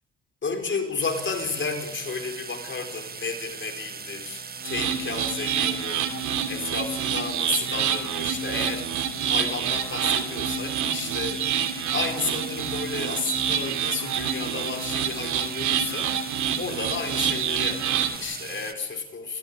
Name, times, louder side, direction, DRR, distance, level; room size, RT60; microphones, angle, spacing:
voice 1, 0.4-6.1 6.5-11.6 11.9-16.1 16.6-19.4, left 4 dB, 40° left, 5 dB, 4.6 m, -32 dB
sound 1, 1.0-18.7, right 5 dB, 30° right, 1.4 m, -39 dB
sound 2, 4.6-18.2, right 8 dB, 75° right, 2.9 m, -27 dB
26.5 x 15.0 x 9.0 m, 0.90 s
cardioid pair, 90°, 30 cm